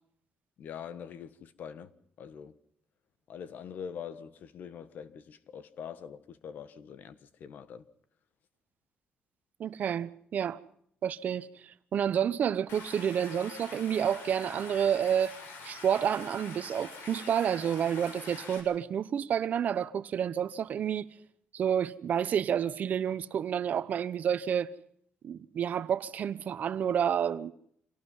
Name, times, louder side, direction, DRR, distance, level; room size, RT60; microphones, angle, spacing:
voice 1, 0.6-1.9 2.2-2.5 3.3-7.9, left 7 dB, 55° left, 1.5 m, -44 dB
voice 2, 9.6-10.6 11.0-15.3 15.6-21.0 21.5-24.7 25.2-27.5, right 8 dB, 50° right, 1.0 m, -29 dB
Stream, 12.7-18.6, left 4 dB, 85° left, 6.5 m, -45 dB
27.0 x 18.0 x 5.6 m
cardioid pair, 135°, 4 cm